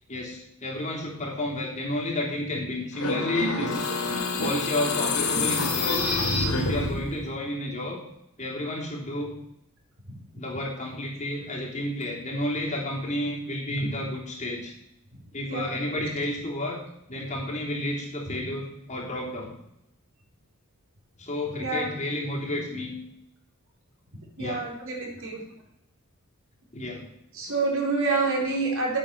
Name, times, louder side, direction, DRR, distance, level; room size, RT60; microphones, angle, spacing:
voice 1, 0.1-3.9 4.4-6.0 6.6-8.0 8.4-9.3 10.3-14.7 15.3-16.8 17.1-19.5 21.2-23.0 24.4-24.6 26.7-27.0 27.4-27.5, left 1 dB, 35° left, -2 dB, 3.4 m, -31 dB
sound 1, 2.9-7.2, left 3 dB, 75° left, 2.7 m, -27 dB
voice 2, 15.4-15.7 21.6-21.9 24.4-25.4 27.3-29.0, right 3 dB, 65° right, -1 dB, 4.0 m, -27 dB
10.0 x 9.1 x 6.7 m, 0.78 s
head